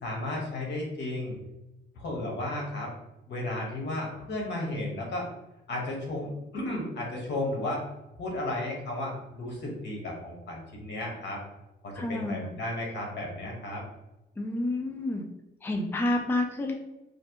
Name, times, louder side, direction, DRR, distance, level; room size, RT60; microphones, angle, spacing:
voice 1, 0.0-1.3 1.9-2.9 3.3-5.3 5.7-7.8 8.1-11.4 11.8-13.8, left 1 dB, 65° left, -1 dB, 1.2 m, -34 dB
voice 2, 12.0-12.4 14.4-15.2 15.6-16.7, left 1 dB, 10° left, 2 dB, 0.4 m, -29 dB
3.2 x 2.6 x 2.8 m, 0.96 s
cardioid pair, 90°, 20 cm